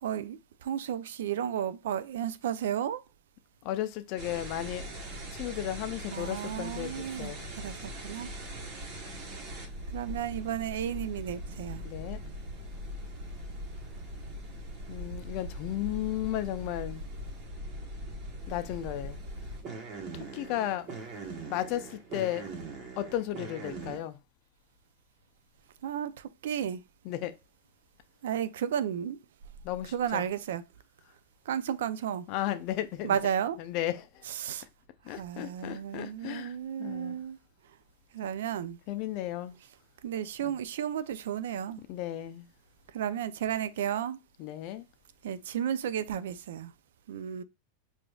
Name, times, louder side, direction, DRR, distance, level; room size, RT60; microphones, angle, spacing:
voice 1, 0.0-3.0 6.1-8.3 9.9-11.8 25.8-26.8 28.2-29.2 29.9-30.6 31.5-32.3 33.0-33.6 34.4-34.7 35.1-37.4 38.1-38.8 40.0-41.8 42.9-44.2 45.2-46.7 47.1-47.4, right 9 dB, 80° right, 0.4 m, -33 dB
voice 2, 3.6-7.5 11.8-12.2 14.9-17.0 18.5-19.2 20.1-20.9 21.4-22.4 23.0-24.2 27.0-27.4 29.6-30.2 32.3-33.2 33.6-34.3 35.0-37.2 38.9-39.6 40.4-40.5 41.9-42.5 44.4-44.9, left 13 dB, 45° left, 0.5 m, -34 dB
sound 1, 4.2-24.0, right 1 dB, 35° right, 1.2 m, -41 dB
4.9 x 2.6 x 2.3 m
supercardioid pair, 145°, 0 cm